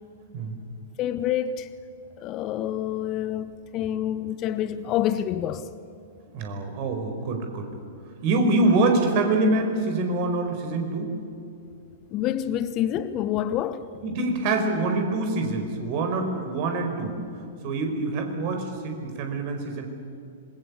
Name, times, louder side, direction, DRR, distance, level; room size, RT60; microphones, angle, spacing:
voice 1, 1.0-1.7 2.2-5.7 12.1-13.9, left 11 dB, 30° left, 0.9 m, -27 dB
voice 2, 6.3-7.7 8.2-11.1 14.0-17.2 17.6-19.9, right 2 dB, 40° right, 4.9 m, -25 dB
26.0 x 22.0 x 8.5 m
figure-of-eight pair, 105°, 0 cm